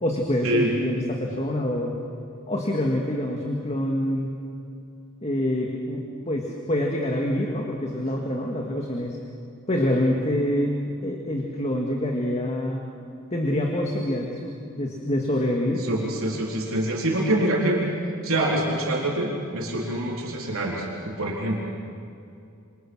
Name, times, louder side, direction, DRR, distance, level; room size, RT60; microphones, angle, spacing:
voice 1, 0.0-1.9 2.5-4.3 5.2-9.2 9.7-12.8 13.3-15.9, left 1 dB, 30° left, 0 dB, 2.1 m, -26 dB
voice 2, 15.8-17.9 18.2-21.6, right 1 dB, 70° right, -3 dB, 4.0 m, -25 dB
28.0 x 25.0 x 6.4 m, 2.5 s
head